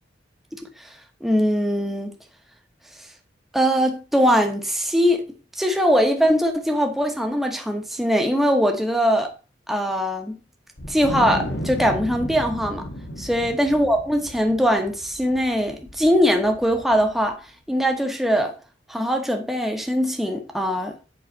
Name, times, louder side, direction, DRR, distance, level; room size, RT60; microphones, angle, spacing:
voice 1, 1.2-2.1 3.5-5.2 5.6-9.3 9.7-10.4 10.9-12.9 13.2-17.4 17.7-18.5 18.9-21.0, equal, ahead, 1.0 m, -21 dB
Wind, 10.8-17.3, equal, 75° left, 1.3 m, -34 dB
7.8 x 5.5 x 4.0 m
head